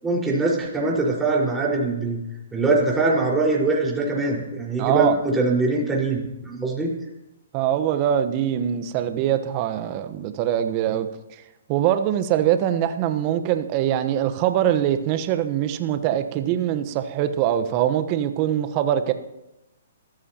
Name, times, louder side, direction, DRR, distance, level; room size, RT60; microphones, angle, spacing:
voice 1, 0.0-2.2 2.5-6.9, right 3 dB, 10° right, -3 dB, 5.0 m, -22 dB
voice 2, 4.8-5.2 7.5-11.1 11.7-19.1, right 11 dB, 35° right, 9 dB, 1.2 m, -23 dB
27.0 x 14.0 x 3.0 m, 0.91 s
hypercardioid pair, 125°, 0 cm